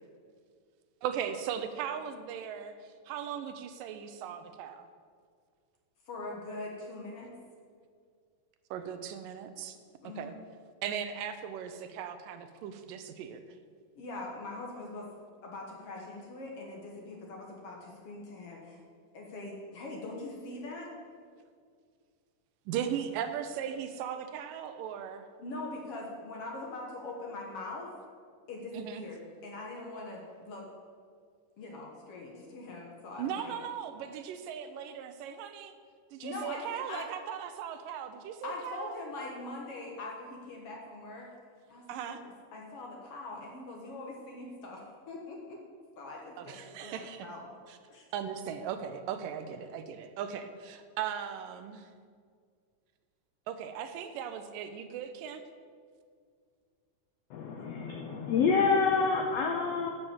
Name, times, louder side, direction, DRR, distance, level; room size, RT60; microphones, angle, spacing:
voice 1, 1.0-4.9 8.7-9.8 10.0-10.3 10.8-13.4 22.7-25.3 28.7-29.0 33.2-35.7 36.1-38.9 41.9-42.2 46.4-47.3 47.7-47.8 48.1-51.9 53.5-55.4, right 8 dB, 85° right, 9 dB, 2.4 m, -38 dB
voice 2, 6.1-7.3 10.0-10.3 14.0-15.1 15.4-18.8 19.1-20.9 25.4-27.9 28.5-30.7 31.6-33.6 36.2-37.1 38.4-41.3 41.7-45.6 46.0-47.5 47.9-48.0, left 2 dB, 55° left, -1 dB, 1.9 m, -42 dB
voice 3, 57.3-59.9, left 5 dB, 80° left, 3 dB, 1.4 m, -27 dB
11.0 x 6.0 x 7.2 m, 2.1 s
omnidirectional pair, 3.8 m